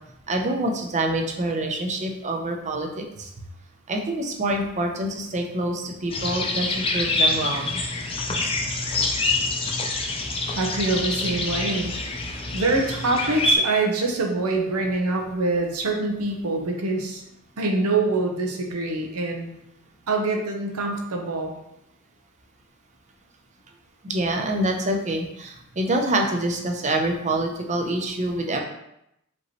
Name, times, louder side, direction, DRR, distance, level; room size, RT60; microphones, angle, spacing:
voice 1, 0.3-3.3 3.9-7.8 24.0-28.6, right 1 dB, 35° right, 2 dB, 0.6 m, -26 dB
sound 1, 6.1-13.6, left 2 dB, 25° left, 0.5 m, -26 dB
voice 2, 10.6-12.0 12.5-17.2 17.6-19.5 20.1-21.5, right 2 dB, 90° right, 2 dB, 0.8 m, -25 dB
5.2 x 3.0 x 3.0 m, 0.82 s
head